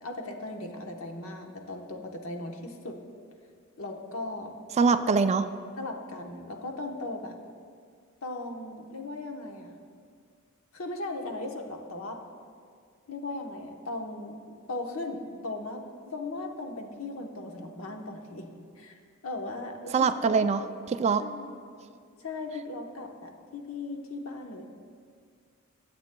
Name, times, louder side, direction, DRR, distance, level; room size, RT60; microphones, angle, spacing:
voice 1, 0.0-3.0 3.8-4.5 4.9-5.0 5.8-7.4 8.2-9.8 10.7-12.2 13.1-18.5 18.8-20.1 21.2-21.5 22.2-24.6, left 2 dB, 70° left, 3 dB, 1.0 m, -38 dB
voice 2, 4.8-5.5 19.9-21.2, right 5 dB, 30° right, 11 dB, 0.3 m, -24 dB
20.5 x 8.0 x 2.2 m, 2.1 s
head